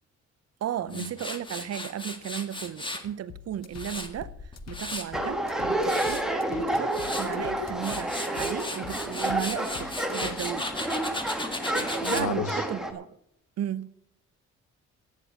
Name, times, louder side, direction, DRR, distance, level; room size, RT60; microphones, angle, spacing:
voice 1, 0.6-11.0 11.7-13.2 13.6-13.9, right 10 dB, 55° right, 0.7 m, -35 dB
Tools, 0.9-3.1 3.5-5.2 5.6-6.2 6.7-7.3 7.7-12.3, left 2 dB, 15° left, 1.8 m, -36 dB
sound 1, 3.3-10.5, left 9 dB, 60° left, 1.0 m, -45 dB
sound 2, 5.1-12.9, right 1 dB, ahead, 1.7 m, -30 dB
voice 2, 12.1-12.6, left 6 dB, 85° left, 1.6 m, -32 dB
9.9 x 9.2 x 7.4 m
cardioid pair, 90°, 30 cm